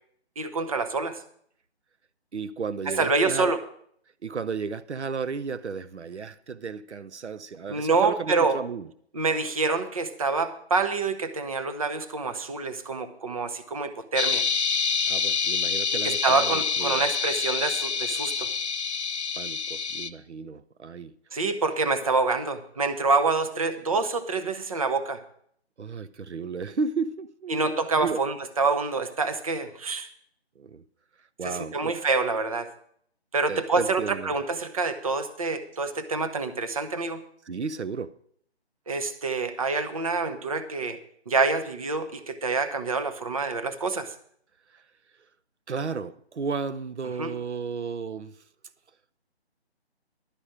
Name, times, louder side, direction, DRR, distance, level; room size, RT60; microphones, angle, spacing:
voice 1, 0.4-1.2 2.9-3.6 7.7-8.6 9.1-14.4 16.0-18.5 21.3-25.2 27.5-30.1 31.4-32.7 33.3-37.2 38.9-41.0 41.3-44.1 47.2-47.3, right 4 dB, 30° right, 0.7 m, -27 dB
voice 2, 2.3-3.6 4.2-8.9 15.1-17.1 19.4-21.1 25.8-28.2 30.6-30.8 31.4-32.0 33.5-34.3 37.4-38.1 44.7-44.8 45.7-48.3, right 5 dB, 90° right, 0.7 m, -33 dB
sound 1, 14.2-20.1, left 5 dB, 75° left, 0.7 m, -27 dB
11.5 x 5.0 x 8.5 m
figure-of-eight pair, 160°, 33 cm